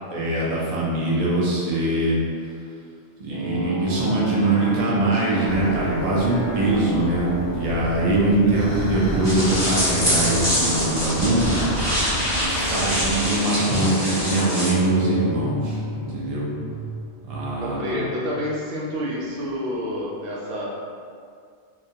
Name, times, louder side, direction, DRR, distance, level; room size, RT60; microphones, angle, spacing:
voice 1, 0.1-2.2 3.2-11.7 12.7-16.5 17.2-17.9, right 2 dB, 55° right, -6 dB, 0.4 m, -22 dB
sound 1, 3.3-19.8, right 1 dB, 80° left, 0.3 m, -32 dB
sound 2, 5.5-13.3, left 1 dB, 60° left, 0.7 m, -32 dB
voice 2, 8.4-8.8 17.6-20.7, equal, 80° right, -4 dB, 0.9 m, -29 dB
sound 3, 9.2-14.7, equal, 25° left, 0.8 m, -25 dB
2.2 x 2.2 x 2.7 m, 2.2 s
omnidirectional pair, 1.3 m